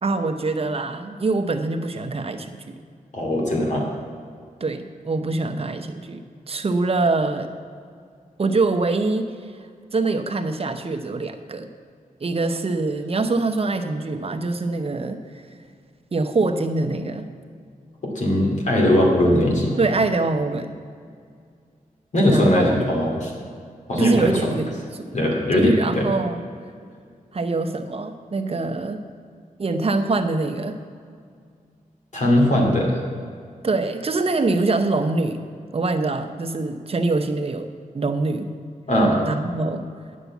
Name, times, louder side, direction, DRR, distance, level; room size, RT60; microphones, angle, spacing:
voice 1, 0.0-2.8 4.6-7.5 8.4-9.5 9.9-11.7 12.2-15.4 16.1-17.3 19.8-20.8 22.3-22.9 24.0-25.2 25.5-26.4 27.3-29.0 29.6-30.8 33.6-35.4 35.7-37.7 37.9-38.5 39.3-39.9, right 3 dB, 45° right, 7 dB, 0.9 m, -24 dB
voice 2, 3.1-3.9 18.0-19.8 22.1-23.3 23.9-24.5 25.1-26.1 32.1-33.0 38.9-39.2, left 1 dB, 55° left, -1 dB, 2.5 m, -19 dB
9.7 x 7.2 x 8.2 m, 2.2 s
wide cardioid pair, 110°, 14 cm